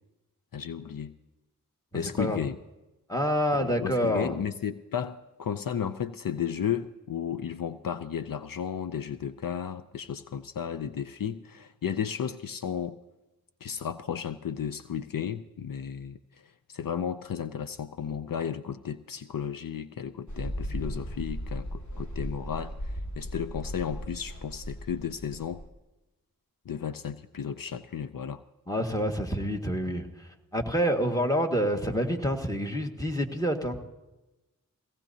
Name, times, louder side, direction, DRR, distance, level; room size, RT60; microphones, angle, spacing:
voice 1, 0.5-1.1 1.9-2.6 3.6-13.0 13.6-16.4 16.7-25.6 26.7-28.4, left 8 dB, 70° left, 12 dB, 0.6 m, -34 dB
voice 2, 1.9-2.4 3.1-4.4 28.7-33.8, equal, 10° left, 4 dB, 1.8 m, -28 dB
Mechanical fan, 20.3-25.7, equal, 55° left, 1.9 m, -36 dB
18.0 x 17.5 x 2.8 m, 1.0 s
cardioid pair, 45°, 35 cm